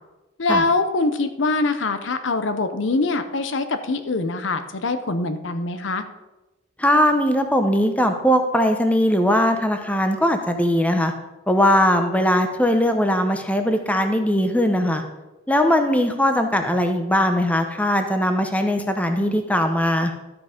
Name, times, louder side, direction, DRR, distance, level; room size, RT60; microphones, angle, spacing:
voice 1, 0.4-6.0, left 3 dB, 65° left, 10 dB, 0.7 m, -23 dB
voice 2, 6.8-11.1 11.5-15.0 15.5-20.2, equal, 5° left, 6 dB, 0.7 m, -20 dB
12.0 x 6.0 x 5.1 m, 1.1 s
head